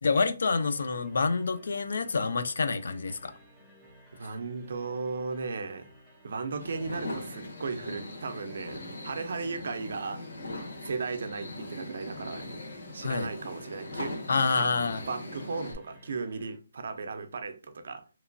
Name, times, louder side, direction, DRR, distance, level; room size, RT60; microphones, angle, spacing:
voice 1, 0.0-3.3 13.0-13.3 14.3-15.0, left 4 dB, 65° left, 0.3 m, -27 dB
sound 1, 0.6-16.6, equal, 5° right, 0.5 m, -57 dB
voice 2, 4.1-5.9 6.2-10.2 10.8-12.6 12.9-14.1 14.6-14.7 15.1-18.0, right 4 dB, 55° right, 0.4 m, -36 dB
sound 2, 6.6-15.7, left 1 dB, 80° left, 1.2 m, -40 dB
2.9 x 2.2 x 2.5 m
hypercardioid pair, 175°, 0 cm